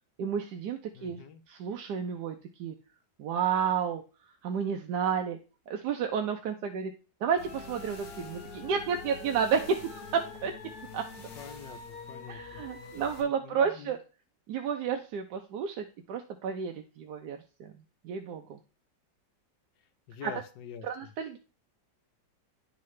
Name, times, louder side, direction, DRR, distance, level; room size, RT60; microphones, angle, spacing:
voice 1, 0.2-2.7 3.2-4.0 4.4-5.4 5.7-6.9 7.2-10.5 10.9-11.3 12.3-14.0 14.5-17.7 18.0-18.6 20.2-20.3 20.8-21.4, right 7 dB, 70° right, 5 dB, 1.1 m, -31 dB
voice 2, 0.9-1.4 11.4-12.7 13.2-13.9 19.8-21.1, left 6 dB, 75° left, 8 dB, 1.4 m, -46 dB
sound 1, 7.4-13.2, left 4 dB, 55° left, 1.6 m, -45 dB
11.0 x 3.8 x 3.2 m, 0.35 s
omnidirectional pair, 2.0 m